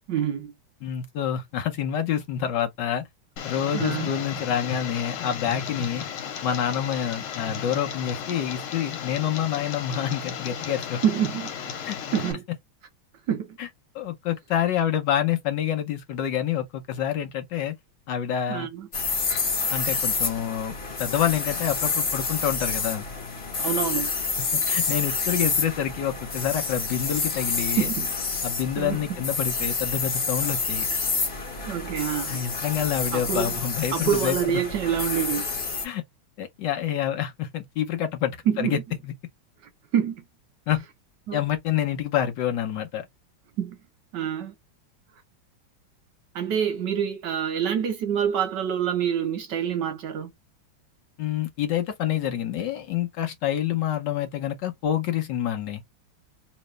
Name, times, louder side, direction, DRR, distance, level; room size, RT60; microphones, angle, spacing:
voice 1, 0.1-0.5 3.7-4.1 11.0-11.8 12.1-12.4 13.3-13.6 18.5-18.9 23.6-24.1 27.8-28.1 28.8-29.0 31.7-32.4 33.1-33.5 33.9-35.5 38.5-38.8 39.9-40.2 41.3-41.4 43.6-43.8 44.1-44.5 46.3-50.3, right 9 dB, 70° right, 1.1 m, -26 dB
voice 2, 0.8-3.0 3.4-6.0 6.4-11.0 11.8-12.0 13.6-13.7 13.9-17.7 18.1-18.7 19.7-23.1 24.5-27.9 28.4-30.9 32.3-34.4 35.8-36.0 36.4-38.8 39.0-39.1 40.7-40.8 41.3-43.1 51.2-55.8, left 10 dB, 65° left, 1.2 m, -27 dB
Tick, 3.4-12.3, left 8 dB, 85° left, 1.8 m, -34 dB
sound 1, 18.9-35.9, left 4 dB, 35° left, 1.2 m, -28 dB
3.1 x 3.0 x 3.1 m
omnidirectional pair, 2.3 m